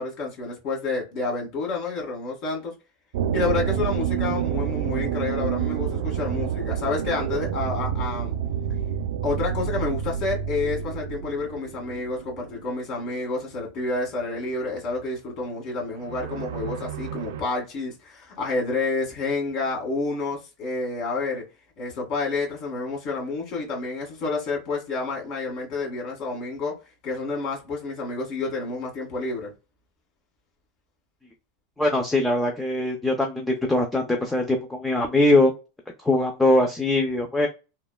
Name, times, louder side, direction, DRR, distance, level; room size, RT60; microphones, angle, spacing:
voice 1, 0.0-2.7 3.3-8.3 9.2-21.4 21.8-26.7 27.0-29.5, left 3 dB, 45° left, 1.5 m, -29 dB
sound 1, 3.1-13.1 13.4-13.5 16.0-17.4, right 9 dB, 70° right, 0.3 m, -28 dB
voice 2, 31.8-35.5 36.0-37.5, left 1 dB, 5° left, 0.4 m, -21 dB
3.2 x 2.1 x 2.2 m
supercardioid pair, 150°, 0 cm